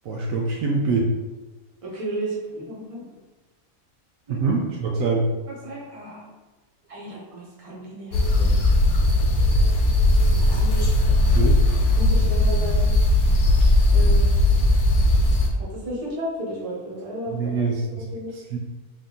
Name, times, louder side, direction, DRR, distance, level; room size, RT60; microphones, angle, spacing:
voice 1, 0.0-1.1 4.3-5.3 9.7-9.9 10.9-11.6 17.3-18.0 18.3-18.6, right 3 dB, 75° right, -1 dB, 1.0 m, -25 dB
voice 2, 1.8-3.2 4.3-4.4 4.9-5.1 5.6-6.3 6.9-8.5 9.4-9.7 10.3-10.9 11.9-12.9 13.9-14.3 15.6-17.7 17.9-18.3, right 1 dB, 25° right, -5 dB, 1.0 m, -33 dB
sound 1, 8.1-15.5, left 1 dB, 90° left, 1.2 m, -18 dB
3.6 x 2.7 x 3.8 m, 1.2 s
omnidirectional pair, 1.5 m